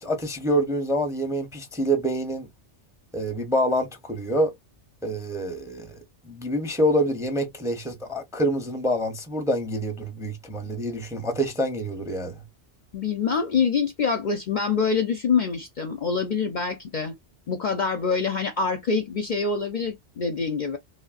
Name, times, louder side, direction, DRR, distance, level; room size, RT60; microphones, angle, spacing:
voice 1, 0.0-2.5 3.1-4.5 5.0-6.0 6.3-12.4, equal, 5° right, 0.5 m, -26 dB
voice 2, 12.9-17.1 17.5-20.8, left 5 dB, 55° left, 0.6 m, -25 dB
3.2 x 2.1 x 2.3 m
omnidirectional pair, 1.2 m